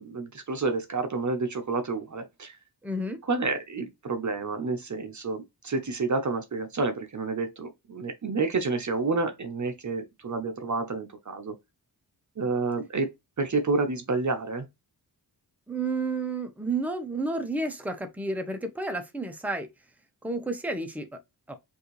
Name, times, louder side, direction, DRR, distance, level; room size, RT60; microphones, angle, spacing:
voice 1, 0.0-2.6 3.2-11.5 12.4-13.1 13.4-14.7, right 3 dB, 45° right, 0.8 m, -29 dB
voice 2, 2.8-3.2 15.7-19.7 20.2-21.1 21.5-21.6, right 2 dB, 5° right, 0.8 m, -31 dB
5.3 x 2.7 x 3.1 m
cardioid pair, 65°, 41 cm